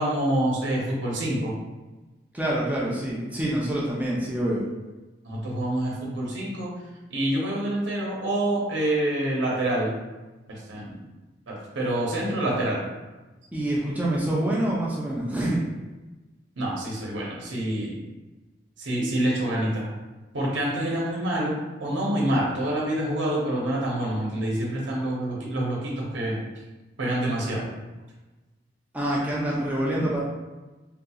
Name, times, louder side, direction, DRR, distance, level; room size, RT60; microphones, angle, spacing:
voice 1, 0.0-1.5 5.2-6.7 7.1-9.9 10.5-11.0 11.5-12.8 16.6-18.0 18.8-19.9 20.3-26.4 27.0-27.6, right 1 dB, 85° right, -4 dB, 0.8 m, -27 dB
voice 2, 2.3-4.6 13.5-15.6 28.9-30.2, right 1 dB, 10° right, -5 dB, 0.5 m, -26 dB
3.7 x 2.8 x 2.3 m, 1.2 s
head